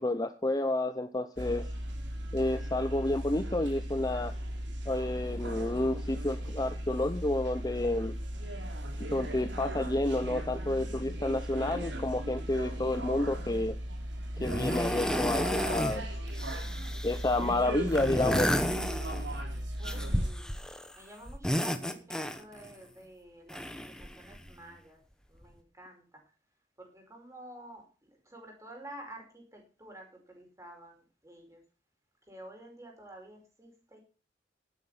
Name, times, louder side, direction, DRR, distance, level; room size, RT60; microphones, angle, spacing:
voice 1, 0.0-1.7 2.3-4.3 4.9-8.1 9.1-13.7 14.4-16.1 17.0-18.5, left 2 dB, 20° left, 10 dB, 0.6 m, -30 dB
sound 1, 1.4-20.3, right 1 dB, 70° right, 3.4 m, -37 dB
sound 2, 13.4-13.8 14.4-16.0 16.3-17.4 17.9-19.4 19.8-20.9 21.3-22.7 23.5-24.5 25.4-25.5, equal, 5° left, 1.1 m, -32 dB
voice 2, 19.8-20.5 20.9-25.0 25.3-26.2 26.8-31.6 32.2-34.0, right 1 dB, 15° right, 1 dB, 5.1 m, -50 dB
11.5 x 9.8 x 5.8 m, 0.35 s
head